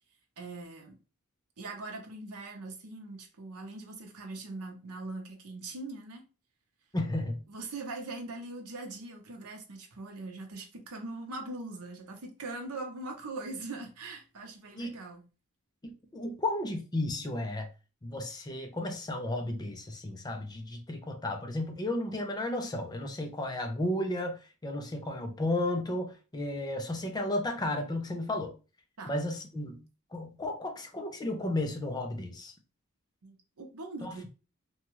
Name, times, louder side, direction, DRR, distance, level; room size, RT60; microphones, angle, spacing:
voice 1, 0.4-1.0 1.6-6.2 7.5-15.3 29.0-29.1 33.2-34.3, right 2 dB, 80° right, 0.7 m, -41 dB
voice 2, 6.9-7.4 14.7-14.9 15.8-17.7 18.0-28.5 29.1-29.8 30.1-32.5 34.0-34.1, left 1 dB, 20° left, 0.4 m, -33 dB
2.7 x 2.3 x 3.0 m
head